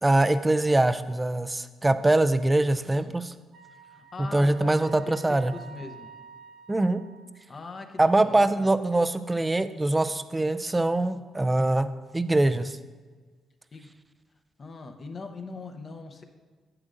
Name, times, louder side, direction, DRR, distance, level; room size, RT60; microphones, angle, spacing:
voice 1, 0.0-3.3 4.3-5.5 6.7-7.0 8.0-11.9 12.1-12.8, right 2 dB, 15° right, 11 dB, 0.4 m, -23 dB
Wind instrument woodwind instrument, 3.5-7.4, right 6 dB, 60° right, 0.6 m, -49 dB
voice 2, 3.8-6.1 7.5-8.7 13.7-13.9 14.6-16.2, left 3 dB, 40° left, 5 dB, 0.7 m, -41 dB
9.8 x 7.7 x 2.6 m, 1.4 s
cardioid pair, 90°, 0 cm